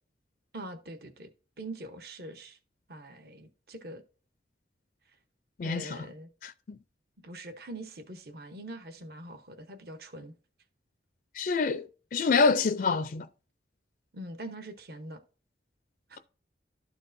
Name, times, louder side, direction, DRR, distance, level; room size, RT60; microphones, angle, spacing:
voice 1, 0.5-1.3 1.6-2.6 2.9-4.0 5.6-6.3 7.2-10.3 14.1-15.2 16.1-16.2, right 1 dB, 60° right, 0.9 m, -43 dB
voice 2, 5.6-6.0 6.4-6.8 11.3-13.3, left 4 dB, 50° left, 0.4 m, -27 dB
12.5 x 4.5 x 2.6 m
head